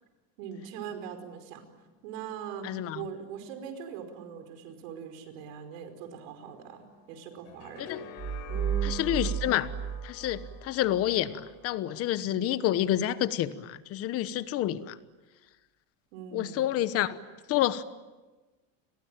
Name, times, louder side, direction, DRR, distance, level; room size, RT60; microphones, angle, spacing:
voice 1, 0.4-1.7 2.0-8.1 8.5-9.0 16.1-16.7, right 8 dB, 75° right, 8 dB, 5.3 m, -41 dB
voice 2, 2.6-3.0 7.8-8.0 8.8-9.7 10.0-15.0 16.3-17.2 17.5-17.8, left 12 dB, 35° left, 14 dB, 1.2 m, -28 dB
sound 1, 6.4-12.0, left 9 dB, 90° left, 4.4 m, -48 dB
sound 2, 8.2-11.1, right 8 dB, 30° right, 2.8 m, -33 dB
29.5 x 22.0 x 9.0 m, 1.2 s
cardioid pair, 170°, 39 cm